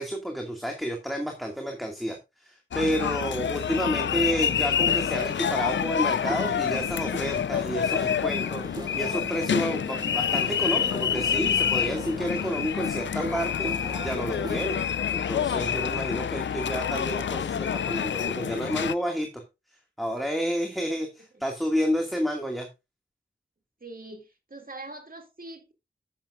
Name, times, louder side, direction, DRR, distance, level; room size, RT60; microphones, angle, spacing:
voice 1, 0.0-19.4 20.0-22.7, equal, ahead, 2.2 m, -30 dB
sound 1, 2.7-18.9, left 8 dB, 75° left, 0.4 m, -27 dB
sound 2, 6.2-14.6, right 2 dB, 20° right, 0.8 m, -40 dB
voice 2, 23.8-25.7, right 2 dB, 50° right, 2.4 m, -42 dB
10.5 x 8.8 x 2.6 m
cardioid pair, 40°, 19 cm